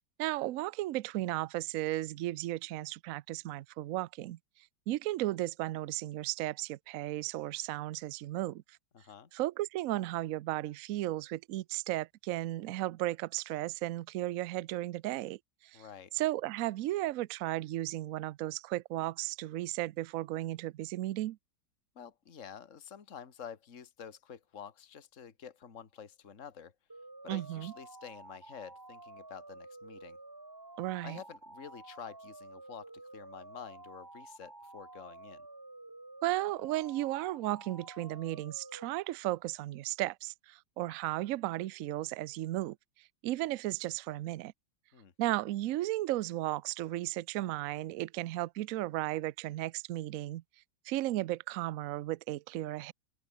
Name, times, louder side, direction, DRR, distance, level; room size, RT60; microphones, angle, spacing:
voice 1, 0.2-4.4 4.9-8.6 9.3-15.8 16.1-21.4 27.3-27.7 30.8-31.2 36.2-42.8 43.2-44.5 45.2-50.4 50.8-52.9, right 16 dB, 80° right, 0.7 m, -35 dB
voice 2, 8.9-9.3 15.7-16.1 22.0-26.7 27.2-30.2 31.0-35.5 44.9-45.1, left 7 dB, 40° left, 2.0 m, -49 dB
sound 1, 26.9-38.9, right 2 dB, 15° right, 1.1 m, -51 dB
open air
omnidirectional pair, 2.0 m